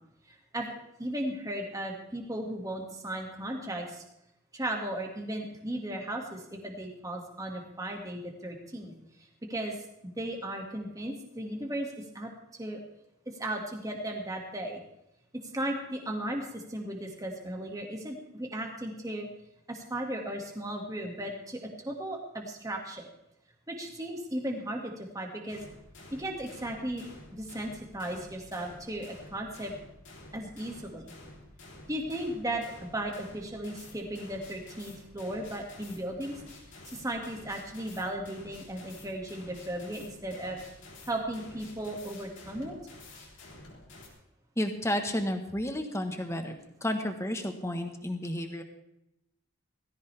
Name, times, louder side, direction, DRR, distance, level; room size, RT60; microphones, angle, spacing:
voice 1, 0.3-4.0 4.5-8.9 9.5-9.7 10.0-12.3 12.6-12.8 13.3-14.8 15.3-19.3 19.7-23.1 23.7-25.6 26.1-27.0 27.3-29.7 30.3-31.1 31.9-36.4 36.9-40.6 41.1-42.7, right 1 dB, 15° right, 1 dB, 2.1 m, -36 dB
sound 1, 25.5-44.1, left 2 dB, 55° left, 3.6 m, -50 dB
voice 2, 44.6-46.5 46.8-48.6, left 1 dB, 15° left, 6 dB, 1.3 m, -31 dB
18.0 x 15.5 x 3.5 m, 0.84 s
head